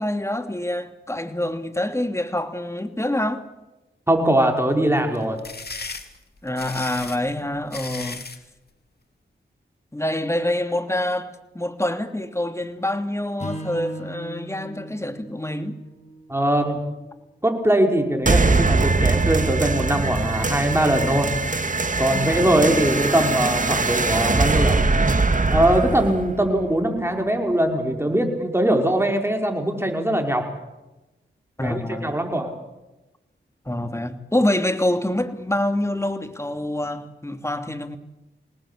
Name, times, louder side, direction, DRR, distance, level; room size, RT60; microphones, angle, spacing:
voice 1, 0.0-3.4 6.4-8.2 9.9-15.7 22.3-23.1 31.6-32.2 33.7-38.0, left 1 dB, 15° left, 2.8 m, -26 dB
voice 2, 4.1-5.4 16.3-16.8 17.4-21.3 22.0-24.8 25.5-30.4 31.6-32.5, right 1 dB, 10° right, 5.8 m, -21 dB
sound 1, 5.1-8.4, left 4 dB, 50° left, 2.6 m, -35 dB
Strum, 13.4-17.7, right 1 dB, 35° left, 7.8 m, -38 dB
sound 2, 18.3-27.3, right 3 dB, 40° right, 2.1 m, -22 dB
26.0 x 19.0 x 8.6 m
cardioid pair, 45°, 20 cm